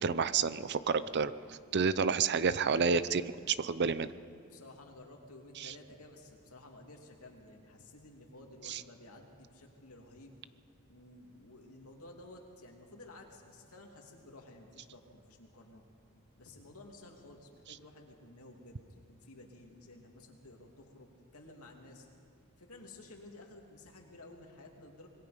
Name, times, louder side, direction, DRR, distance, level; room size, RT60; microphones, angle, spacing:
voice 1, 0.0-4.1 5.6-5.7 8.7-8.8, right 5 dB, 50° right, 15 dB, 0.6 m, -30 dB
voice 2, 4.5-10.4 10.9-15.8 16.4-22.1 22.6-25.1, left 2 dB, 75° left, 1 dB, 2.7 m, -54 dB
25.0 x 21.5 x 5.2 m, 2.2 s
head